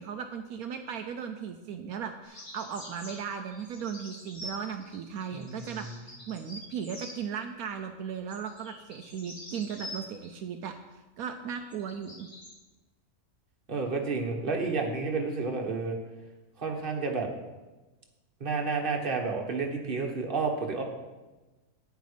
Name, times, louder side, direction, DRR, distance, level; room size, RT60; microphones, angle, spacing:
voice 1, 0.0-12.3, right 7 dB, 75° right, 6 dB, 1.1 m, -37 dB
sound 1, 2.2-7.2 8.3-10.3 11.6-12.5, left 1 dB, 45° left, 4.9 m, -45 dB
voice 2, 5.3-5.8 13.7-16.0 16.6-17.3 18.4-20.8, right 4 dB, 40° right, 1 dB, 1.5 m, -30 dB
9.6 x 9.1 x 5.0 m, 1.2 s
omnidirectional pair, 1.6 m